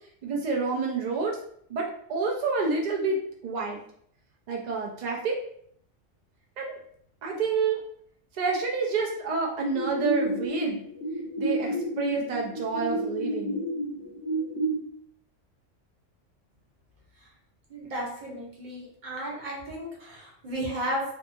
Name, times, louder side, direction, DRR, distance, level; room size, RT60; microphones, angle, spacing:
voice 1, 0.2-1.4 1.7-3.8 4.5-5.4 6.6-6.8 7.2-7.8 8.3-10.8 11.4-13.6, right 4 dB, 85° right, 0 dB, 0.4 m, -28 dB
sound 1, 9.7-14.7, right 1 dB, 65° left, 0.7 m, -30 dB
voice 2, 17.7-21.0, right 1 dB, 45° right, -3 dB, 0.8 m, -34 dB
2.7 x 2.3 x 2.5 m, 0.65 s
omnidirectional pair, 1.3 m